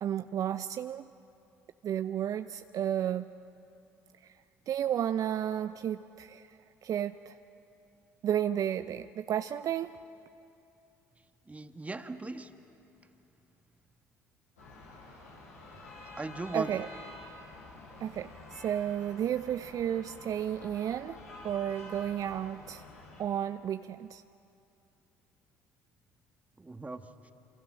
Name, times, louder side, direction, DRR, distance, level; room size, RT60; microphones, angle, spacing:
voice 1, 0.0-1.1 1.8-3.3 4.2-4.3 4.7-7.4 8.2-10.0 16.5-16.9 18.0-21.2 21.4-22.9 23.2-24.2, right 10 dB, 50° right, 11 dB, 0.6 m, -32 dB
voice 2, 11.5-12.5 16.2-16.8 26.6-27.3, right 2 dB, 20° right, 7 dB, 1.7 m, -38 dB
sound 1, 14.6-23.2, left 2 dB, 90° left, 7.0 m, -49 dB
28.5 x 27.0 x 6.3 m, 2.7 s
hypercardioid pair, 55°, 7 cm